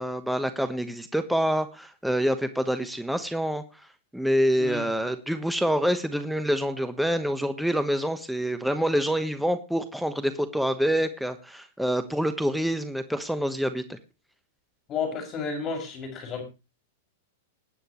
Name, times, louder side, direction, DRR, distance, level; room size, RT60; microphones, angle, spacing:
voice 1, 0.0-3.6 4.1-14.0, equal, ahead, 9 dB, 1.1 m, -26 dB
voice 2, 14.9-16.4, left 5 dB, 35° left, 4 dB, 6.2 m, -32 dB
21.0 x 9.0 x 3.1 m, 0.29 s
hypercardioid pair, 115°, 0 cm